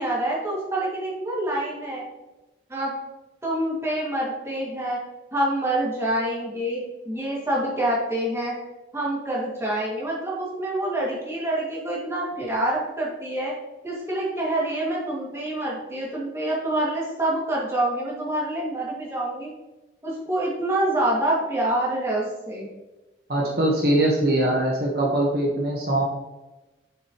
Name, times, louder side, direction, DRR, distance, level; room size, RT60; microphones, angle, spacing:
voice 1, 0.0-2.0 2.7-2.9 3.4-5.0 5.3-8.5 8.9-13.5 13.8-19.5 20.0-22.7, right 1 dB, 15° right, -5 dB, 2.1 m, -26 dB
voice 2, 23.3-26.0, right 1 dB, 55° right, -2 dB, 1.3 m, -22 dB
7.5 x 6.9 x 3.0 m, 1.1 s
head